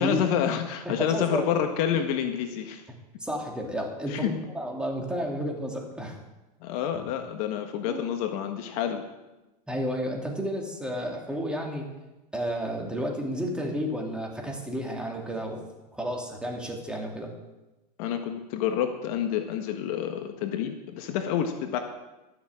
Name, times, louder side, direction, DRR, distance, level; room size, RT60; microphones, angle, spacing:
voice 1, 0.0-2.8 4.1-4.3 6.6-9.0 18.0-21.8, left 9 dB, 60° left, 6 dB, 1.5 m, -28 dB
voice 2, 0.8-1.5 3.2-6.2 7.8-8.0 9.7-11.9 12.3-15.6 15.9-17.3, equal, 5° right, 0 dB, 2.8 m, -31 dB
13.0 x 7.4 x 7.5 m, 1.1 s
hypercardioid pair, 110°, 21 cm